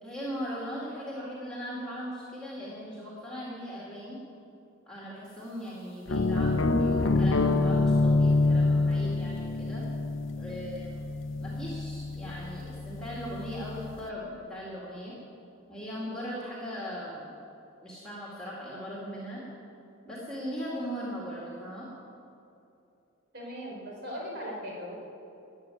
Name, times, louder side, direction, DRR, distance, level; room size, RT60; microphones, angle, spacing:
voice 1, 0.0-4.2 4.9-9.9 10.4-11.1 11.4-15.2 15.7-17.3 17.8-19.4 20.0-21.9, equal, 5° left, -5 dB, 2.0 m, -39 dB
sound 1, 6.1-14.0, left 3 dB, 65° left, 0.6 m, -27 dB
voice 2, 23.3-24.9, equal, 50° right, -2 dB, 4.1 m, -38 dB
13.0 x 8.1 x 9.6 m, 2.8 s
head